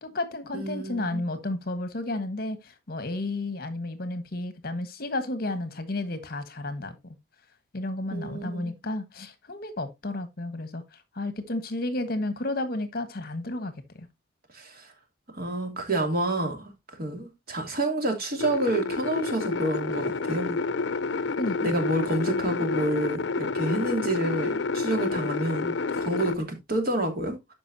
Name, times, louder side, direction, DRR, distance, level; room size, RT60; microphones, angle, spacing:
voice 1, 0.0-7.1 7.7-14.1 21.4-21.8, left 2 dB, 55° left, 1.3 m, -32 dB
voice 2, 0.5-1.2 8.1-8.7 14.5-14.9 15.3-16.7 17.0-20.6 21.6-27.5, right 1 dB, 55° right, 2.6 m, -29 dB
sound 1, 18.4-26.3, left 4 dB, 80° left, 0.5 m, -29 dB
13.0 x 5.3 x 2.7 m
head